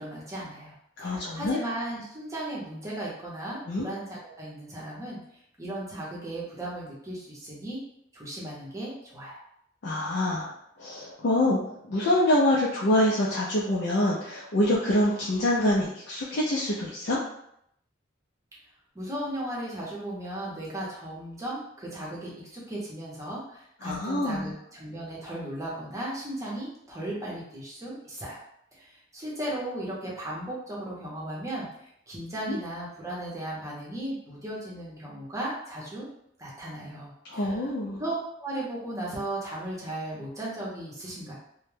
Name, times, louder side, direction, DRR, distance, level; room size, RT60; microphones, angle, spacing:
voice 1, 0.0-5.2 5.6-7.8 8.1-9.4 18.9-28.4 28.7-31.7 32.1-36.1 36.4-37.7 38.0-38.1 38.4-41.3, right 1 dB, 15° right, -5 dB, 0.7 m, -36 dB
voice 2, 1.0-1.6 3.7-3.8 9.8-10.5 10.8-17.2 23.8-24.5 32.5-32.6 37.3-38.0, left 1 dB, 60° left, -6 dB, 0.4 m, -25 dB
2.2 x 2.0 x 3.1 m, 0.74 s
head